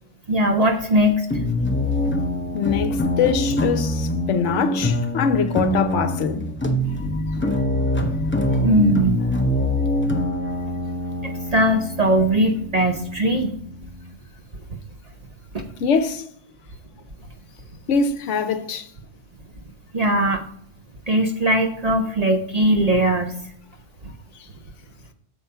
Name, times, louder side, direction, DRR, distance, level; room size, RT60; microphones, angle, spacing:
voice 1, 0.3-1.3 8.6-9.3 11.2-13.5 15.5-15.7 19.9-20.4 21.1-23.3, right 1 dB, 40° right, 0.6 m, -20 dB
sound 1, 1.3-14.1, left 1 dB, 15° left, 0.4 m, -24 dB
voice 2, 2.5-6.5 7.0-7.5 15.8-16.3 17.9-18.9 24.4-24.5, left 6 dB, 75° left, 1.0 m, -23 dB
7.2 x 4.6 x 5.5 m
omnidirectional pair, 1.3 m